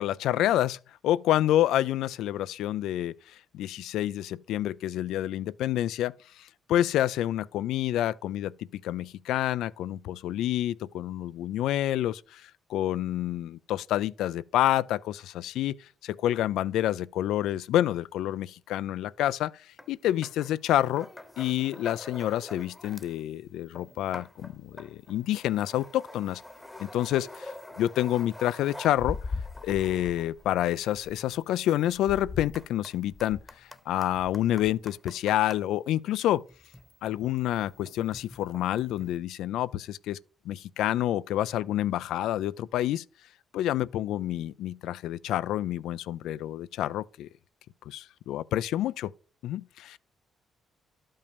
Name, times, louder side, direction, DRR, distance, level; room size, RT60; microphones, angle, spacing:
voice 1, 0.0-3.2 3.5-15.8 16.0-19.5 19.9-21.1 21.4-26.4 26.8-27.5 27.8-29.2 29.6-33.4 33.9-36.4 37.0-40.2 40.5-43.0 43.5-47.3 47.9-49.1 49.4-50.0, left 13 dB, 85° left, 0.4 m, -28 dB
sound 1, 19.8-19.9 20.2-23.2 23.6-35.6 36.4-39.2, left 1 dB, 15° left, 1.0 m, -47 dB
sound 2, 29.0-31.1 32.0-32.7 33.0-33.5 34.1-34.7, left 4 dB, 35° left, 0.8 m, -38 dB
12.0 x 5.4 x 5.1 m
cardioid pair, 90°, 0 cm